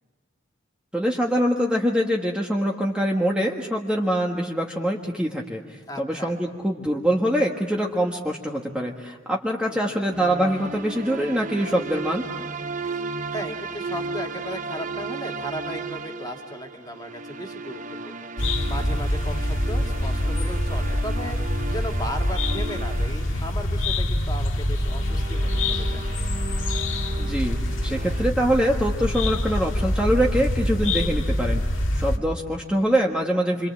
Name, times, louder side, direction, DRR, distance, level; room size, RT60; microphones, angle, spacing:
voice 1, 0.9-12.3 27.2-33.7, equal, 5° right, -1 dB, 1.6 m, -24 dB
voice 2, 5.9-6.3 9.7-10.0 13.3-18.3 18.7-26.0, equal, 20° left, 2 dB, 2.5 m, -36 dB
sound 1, 10.1-23.8 24.7-28.2, right 3 dB, 40° right, 0.8 m, -35 dB
sound 2, 18.4-32.2, left 1 dB, 75° left, 1.8 m, -25 dB
28.0 x 26.5 x 7.6 m, 1.4 s
head